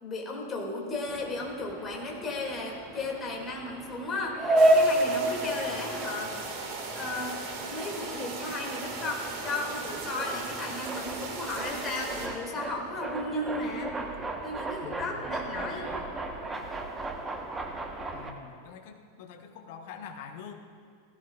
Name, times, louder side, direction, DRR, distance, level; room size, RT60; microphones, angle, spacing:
voice 1, 0.0-6.5 6.9-7.4 7.7-13.9 14.4-16.0, left 2 dB, 20° left, 0 dB, 2.2 m, -35 dB
sound 1, 1.1-18.3, right 1 dB, 15° right, 1.0 m, -32 dB
sound 2, 4.6-12.3, right 4 dB, 40° right, 1.7 m, -38 dB
voice 2, 14.8-16.1 18.1-20.5, left 7 dB, 50° left, 5 dB, 1.1 m, -45 dB
16.0 x 14.0 x 2.4 m, 2.1 s
figure-of-eight pair, 90°, 0 cm